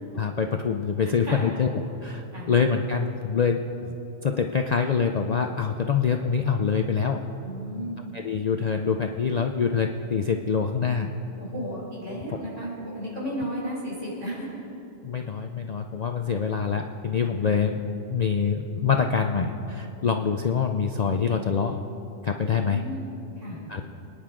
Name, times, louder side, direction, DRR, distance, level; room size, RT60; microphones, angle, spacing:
voice 1, 0.2-1.7 2.0-4.0 4.2-7.2 8.1-11.1 12.3-12.4 15.0-17.8 18.1-21.8 22.2-22.8 23.7-23.8, left 6 dB, 50° left, 4 dB, 0.5 m, -25 dB
voice 2, 1.0-1.5 2.3-2.5 7.4-8.0 11.4-14.5 17.4-17.5 22.6-23.0 23.4-23.6, equal, 70° right, -6 dB, 4.6 m, -34 dB
25.0 x 10.0 x 3.7 m, 2.9 s
omnidirectional pair, 1.3 m